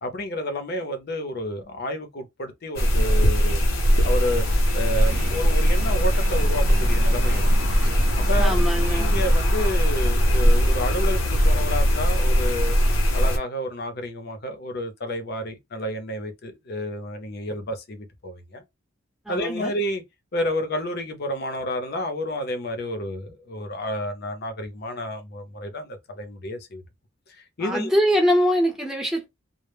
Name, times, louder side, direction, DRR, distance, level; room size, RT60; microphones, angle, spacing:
voice 1, 0.0-3.6 4.0-4.4 4.7-7.5 8.3-12.8 13.1-18.6 19.3-20.0 20.3-26.8 27.3-27.9, left 1 dB, 55° left, 0.6 m, -30 dB
sound 1, 2.8-13.4, equal, 90° left, 0.7 m, -20 dB
sound 2, 5.0-9.4, right 3 dB, 55° right, 0.4 m, -37 dB
voice 2, 8.4-9.1 19.3-19.7 27.6-29.2, equal, 5° right, 0.7 m, -23 dB
2.1 x 2.0 x 3.2 m
head